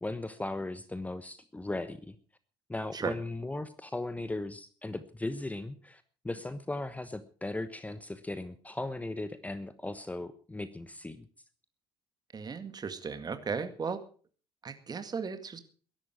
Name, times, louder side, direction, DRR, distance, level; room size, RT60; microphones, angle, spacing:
voice 1, 0.0-2.2 2.7-11.3, left 2 dB, 10° left, 13 dB, 1.1 m, -37 dB
voice 2, 12.3-14.0 14.6-15.6, right 5 dB, 30° right, 9 dB, 2.0 m, -36 dB
21.0 x 11.5 x 4.8 m, 0.41 s
figure-of-eight pair, 55°, 14 cm